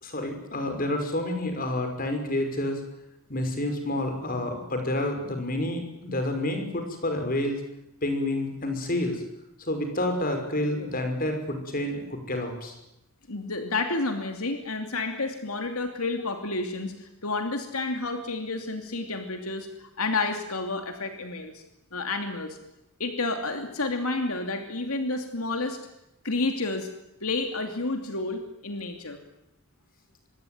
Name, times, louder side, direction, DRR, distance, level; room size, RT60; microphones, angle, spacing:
voice 1, 0.0-2.8 3.3-7.6 8.0-9.2 9.6-12.7, left 1 dB, 40° left, 5 dB, 5.8 m, -29 dB
voice 2, 13.3-21.6 21.9-22.6 23.0-25.8 26.2-26.9 27.2-29.2, left 3 dB, 75° left, 5 dB, 2.8 m, -30 dB
25.5 x 21.5 x 9.4 m, 0.87 s
head